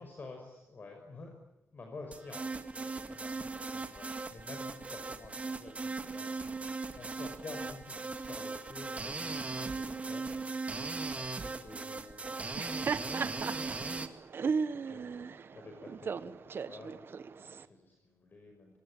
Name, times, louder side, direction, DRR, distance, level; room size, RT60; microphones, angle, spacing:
voice 1, 0.0-1.3 1.7-18.8, left 3 dB, 40° left, 3 dB, 5.6 m, -51 dB
sound 1, 2.1-14.1, right 3 dB, 25° right, 2.2 m, -38 dB
Laughter, 12.4-17.6, right 5 dB, 50° right, 1.2 m, -36 dB
26.0 x 24.0 x 9.0 m, 0.87 s
wide cardioid pair, 130°, 5 cm